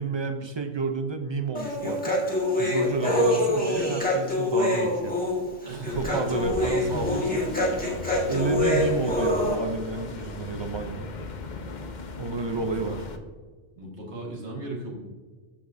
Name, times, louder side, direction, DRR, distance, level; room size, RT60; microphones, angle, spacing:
voice 1, 0.0-2.2 2.6-5.1 6.0-7.4 8.3-11.1 12.2-13.0, right 3 dB, 50° right, 7 dB, 0.3 m, -30 dB
Human voice, 1.5-9.6, left 1 dB, 5° left, 1.6 m, -25 dB
voice 2, 5.6-7.2 12.5-13.0 13.8-14.9, right 2 dB, 65° right, -2 dB, 2.0 m, -36 dB
sound 1, 5.9-13.2, left 2 dB, 45° left, 0.7 m, -37 dB
13.5 x 5.1 x 2.6 m, 1.4 s
omnidirectional pair, 1.3 m